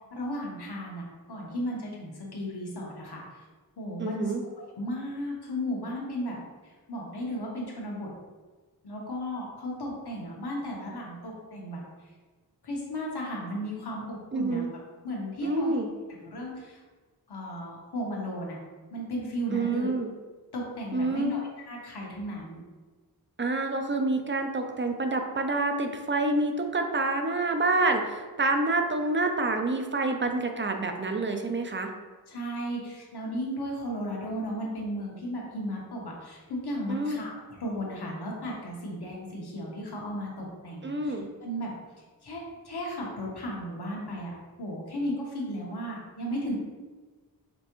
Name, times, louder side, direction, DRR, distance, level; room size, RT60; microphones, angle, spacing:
voice 1, 0.1-3.2 3.8-4.3 4.7-6.4 6.9-8.1 8.8-11.8 12.6-14.7 15.0-15.7 16.1-16.8 17.3-18.6 18.9-19.9 20.5-22.6 32.3-37.3 37.6-41.1 41.4-41.7 42.2-44.3 44.6-46.5, equal, 90° left, -3 dB, 1.2 m, -35 dB
voice 2, 4.0-4.4 14.3-14.7 15.4-15.9 19.5-20.1 20.9-21.3 23.4-31.9 36.9-37.2 40.8-41.3, right 2 dB, 30° right, 4 dB, 0.5 m, -27 dB
5.2 x 3.3 x 3.0 m, 1.4 s
wide cardioid pair, 100°, 38 cm